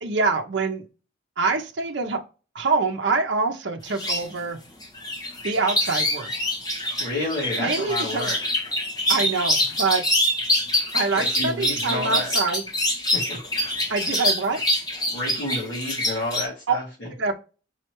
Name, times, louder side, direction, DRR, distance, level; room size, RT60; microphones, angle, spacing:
voice 1, 0.0-0.8 1.4-2.2 2.5-4.6 5.4-6.3 7.6-8.3 9.1-10.0 10.9-12.6 13.9-14.6 16.7-16.8 17.2-17.3, right 4 dB, 65° right, 3 dB, 0.7 m, -25 dB
sound 1, 3.9-4.2 4.8-16.5, left 1 dB, 20° left, 1.3 m, -25 dB
voice 2, 6.7-8.4 11.1-12.3 13.1-13.4 15.1-17.1, left 1 dB, 55° left, -8 dB, 2.1 m, -30 dB
5.5 x 3.2 x 3.0 m, 0.33 s
head